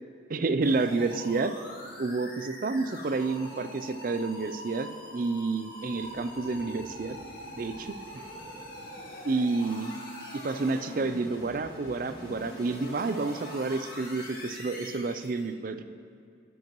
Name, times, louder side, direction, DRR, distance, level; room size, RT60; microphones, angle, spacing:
voice 1, 0.3-1.5 2.0-7.2 7.5-7.9 9.2-10.0 10.3-15.8, right 3 dB, 50° right, 10 dB, 0.4 m, -29 dB
sound 1, 0.6-15.5, left 1 dB, 55° left, 2.0 m, -43 dB
18.0 x 8.0 x 3.0 m, 2.4 s
head